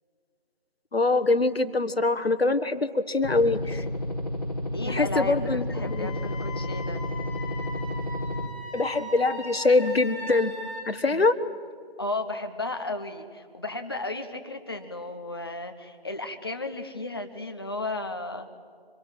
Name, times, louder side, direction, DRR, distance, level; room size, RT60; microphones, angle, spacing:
voice 1, 0.9-3.8 4.9-6.1 8.7-10.5 10.9-11.3, left 3 dB, 75° left, 9 dB, 1.5 m, -24 dB
sound 1, 3.2-8.5, left 1 dB, 40° left, 1.7 m, -31 dB
voice 2, 4.7-7.0 11.1-11.3 12.0-18.5, left 2 dB, 25° left, 6 dB, 1.1 m, -34 dB
Wind instrument woodwind instrument, 5.8-10.9, left 1 dB, 10° right, 3.8 m, -39 dB
25.5 x 21.0 x 9.0 m, 2.2 s
figure-of-eight pair, 170°, 30 cm